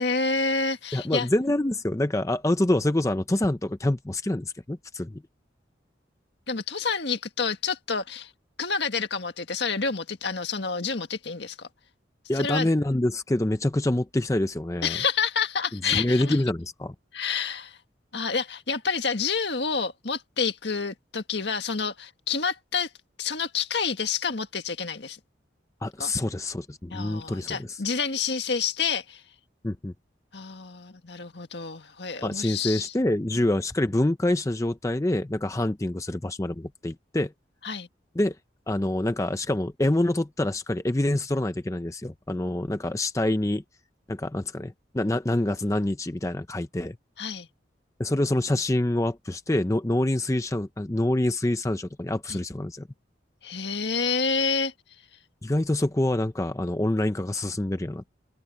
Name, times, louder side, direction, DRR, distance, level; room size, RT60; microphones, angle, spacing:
voice 1, 0.0-1.3 6.5-8.3 8.6-11.7 12.3-12.7 14.8-16.4 17.1-17.8 18.1-22.9 23.2-25.2 26.0-26.1 26.9-29.2 30.3-32.9 33.3-33.4 37.6-37.9 47.2-47.5 52.3-52.4 53.4-54.7, left 5 dB, 65° left, 1.7 m, -28 dB
voice 2, 0.9-5.2 12.3-15.0 15.7-16.9 25.8-27.8 29.6-29.9 32.2-37.3 38.2-38.4 38.7-43.6 44.1-47.0 48.0-52.9 55.4-58.1, left 1 dB, 15° left, 0.5 m, -26 dB
head